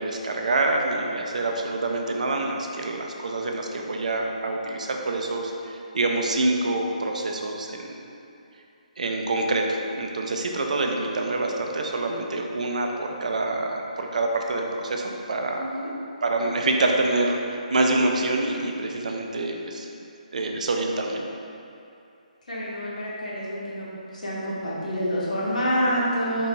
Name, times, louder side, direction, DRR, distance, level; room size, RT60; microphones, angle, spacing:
voice 1, 0.0-8.1 9.0-15.7 16.2-19.9 20.3-21.3, right 2 dB, 60° right, 2 dB, 0.5 m, -26 dB
voice 2, 15.5-15.9 22.5-26.5, equal, 70° left, -7 dB, 1.3 m, -27 dB
4.7 x 4.3 x 2.6 m, 2.6 s
figure-of-eight pair, 140°, 4 cm